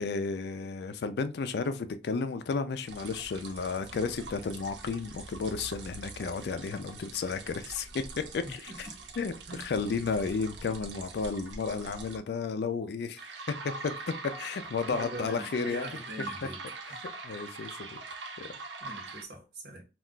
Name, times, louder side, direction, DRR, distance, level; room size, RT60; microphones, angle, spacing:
voice 1, 0.0-8.9 9.2-9.3 9.6-15.9 17.2-18.0 18.4-18.5, left 4 dB, 65° left, 0.4 m, -33 dB
sound 1, 2.9-12.2 13.2-19.2, right 3 dB, 85° right, 0.6 m, -43 dB
voice 2, 8.4-8.8 9.5-9.6 14.9-16.6 18.8-19.9, right 1 dB, 60° right, 0.9 m, -42 dB
2.4 x 2.2 x 3.6 m
head